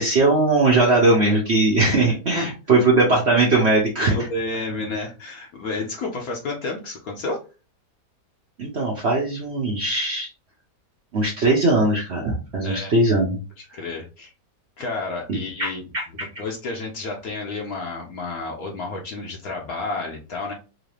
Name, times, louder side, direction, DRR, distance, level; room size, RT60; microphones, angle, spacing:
voice 1, 0.0-4.2 8.6-10.3 11.1-13.4 15.3-16.0, right 2 dB, 50° right, -3 dB, 0.9 m, -20 dB
voice 2, 4.1-7.4 12.6-12.9 13.6-14.3 14.8-15.8 16.1-20.5, left 3 dB, 65° left, 0 dB, 1.2 m, -31 dB
3.8 x 2.8 x 3.2 m, 0.31 s
omnidirectional pair, 1.8 m